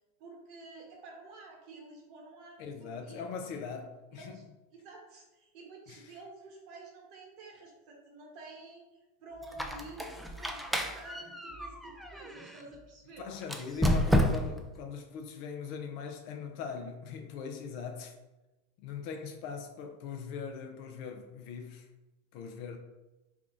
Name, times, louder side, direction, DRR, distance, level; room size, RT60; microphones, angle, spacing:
voice 1, 0.2-3.3 4.1-4.4 4.7-8.8 9.2-13.3, right 3 dB, 55° right, 1.2 m, -50 dB
voice 2, 2.6-4.4 5.9-6.2 13.2-18.1 18.8-21.9 22.3-22.8, left 6 dB, 55° left, 0.5 m, -41 dB
Squeak, 9.4-12.6 13.4-14.7, equal, ahead, 0.4 m, -30 dB
3.5 x 2.4 x 3.8 m
hypercardioid pair, 100°, 0 cm